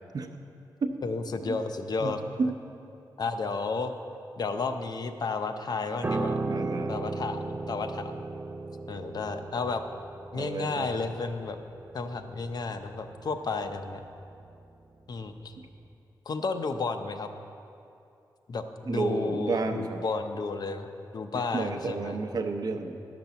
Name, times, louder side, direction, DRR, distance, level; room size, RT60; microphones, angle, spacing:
voice 1, 1.0-2.5 3.2-3.9 4.4-6.4 6.9-8.2 8.9-9.8 10.3-11.6 11.9-14.0 15.1-15.5 16.3-17.3 18.5-20.9 21.1-22.2, left 4 dB, 60° left, 8 dB, 0.6 m, -32 dB
voice 2, 2.0-2.5 6.5-6.9 10.3-10.9 18.9-20.0 21.5-23.0, right 3 dB, 55° right, 6 dB, 0.7 m, -31 dB
Piano, 6.0-15.4 15.7-15.9, right 3 dB, 25° right, 0.4 m, -36 dB
11.5 x 6.0 x 6.9 m, 2.7 s
wide cardioid pair, 95°, 8 cm